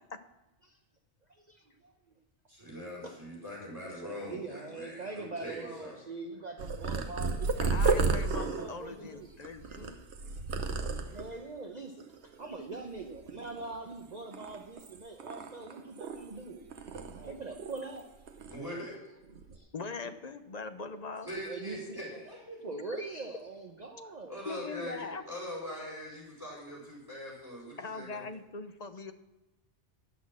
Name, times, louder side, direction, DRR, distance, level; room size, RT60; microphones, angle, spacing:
voice 1, 1.5-1.9 3.0-3.1 3.9-7.6 7.8-9.3 9.6-9.8 11.1-16.6 17.2-18.1 19.5-19.7 21.5-22.0 22.6-24.4, right 3 dB, 40° right, 3 dB, 0.9 m, -43 dB
voice 2, 2.5-6.0 18.5-18.9 21.3-22.6 24.3-28.2, equal, 20° right, -5 dB, 4.1 m, -42 dB
Purr, 6.6-11.4 12.0-12.5 12.7-13.9 14.3-16.4 16.7-18.0 18.3-18.6 19.2-19.6, right 4 dB, 65° right, 1.2 m, -33 dB
voice 3, 7.6-10.0 19.7-21.3 22.9-23.0 24.4-25.2 27.8-29.1, left 4 dB, 40° left, 9 dB, 0.7 m, -41 dB
11.0 x 6.2 x 7.4 m, 1.0 s
omnidirectional pair, 1.2 m